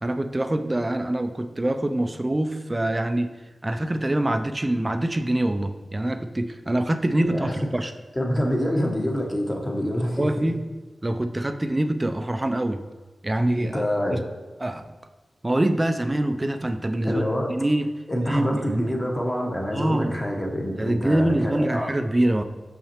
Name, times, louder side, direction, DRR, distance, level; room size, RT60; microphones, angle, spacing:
voice 1, 0.0-3.3 3.6-7.9 10.2-10.6 11.0-12.8 13.2-13.8 14.1-14.2 14.6-14.9 15.4-17.2 17.5-17.9 18.2-18.8 19.7-20.2 20.8-22.4, right 1 dB, 25° right, 8 dB, 0.4 m, -24 dB
voice 2, 8.1-10.3 13.6-14.2 17.0-17.5 18.1-21.9, equal, 20° left, 0 dB, 1.0 m, -26 dB
5.7 x 5.6 x 2.9 m, 1.2 s
cardioid pair, 55°, 0 cm